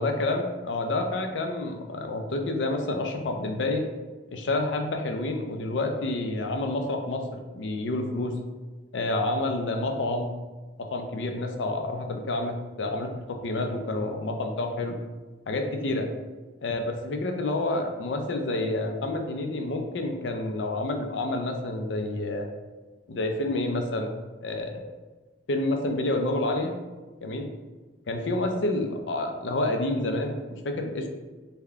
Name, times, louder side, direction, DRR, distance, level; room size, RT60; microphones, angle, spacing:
voice 1, 0.0-3.8 4.3-8.4 8.9-10.3 10.8-15.0 15.5-16.1 16.6-22.5 23.1-24.1 24.4-24.9 25.5-26.7 27.2-27.5 28.1-31.1, left 2 dB, 85° left, 4 dB, 0.5 m, -29 dB
3.4 x 2.2 x 3.5 m, 1.3 s
head